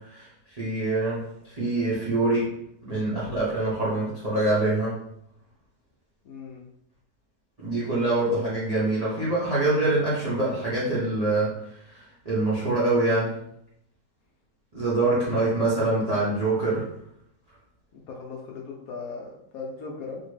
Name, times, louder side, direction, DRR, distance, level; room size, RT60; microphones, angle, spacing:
voice 1, 0.5-2.5 2.9-4.9 7.6-11.5 11.9-12.0 12.2-13.3 14.7-16.8, right 2 dB, 35° right, -8 dB, 0.6 m, -25 dB
voice 2, 6.2-6.6 15.0-15.1 17.9-20.2, left 4 dB, 70° left, 0 dB, 0.9 m, -38 dB
2.8 x 2.8 x 3.2 m, 0.75 s
omnidirectional pair, 1.9 m